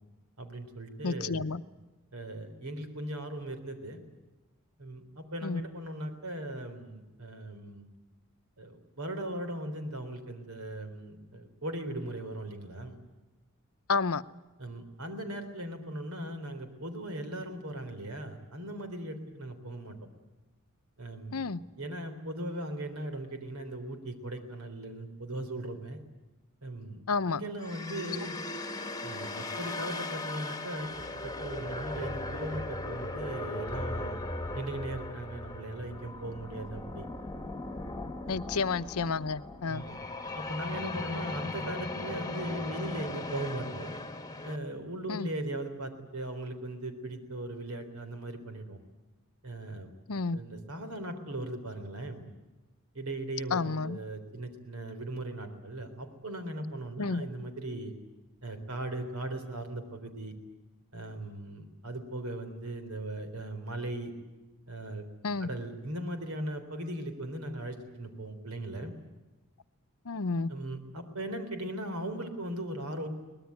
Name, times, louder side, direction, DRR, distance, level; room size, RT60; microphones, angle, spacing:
voice 1, 0.4-1.5 2.1-4.0 4.8-7.9 8.6-13.0 14.6-20.0 21.0-21.5 21.8-26.0 26.6-27.0 27.3-28.4 29.0-30.9 31.2-34.2 34.5-37.0 38.3-38.5 39.7-40.0 40.3-43.9 44.4-48.8 49.4-49.9 50.3-52.3 52.9-57.9 58.4-60.3 60.9-64.1 64.7-65.0 65.4-68.9 70.5-73.1, right 1 dB, 85° right, 3.7 m, -38 dB
voice 2, 1.0-1.6 5.4-5.6 13.9-14.2 21.3-21.6 27.1-27.4 38.3-39.8 45.1-45.3 50.1-50.4 53.5-54.0 57.0-57.2 65.2-65.5 70.1-70.5, left 4 dB, 75° left, 0.8 m, -30 dB
sound 1, 27.6-44.6, left 2 dB, 15° left, 1.3 m, -38 dB
23.5 x 19.5 x 9.5 m
head